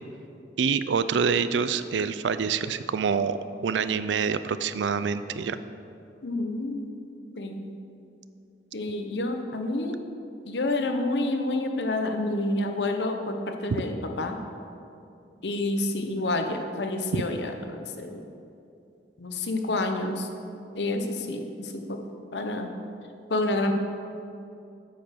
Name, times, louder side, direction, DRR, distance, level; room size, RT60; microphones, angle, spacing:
voice 1, 0.6-5.6 17.1-17.2, right 6 dB, 85° right, 13 dB, 0.4 m, -26 dB
voice 2, 6.2-6.8 7.4-7.7 8.7-10.0 10.5-14.4 15.4-18.2 19.2-20.3 20.7-22.0 22.3-22.7 23.3-23.7, left 2 dB, 75° left, 5 dB, 0.9 m, -29 dB
8.5 x 6.0 x 6.5 m, 2.6 s
head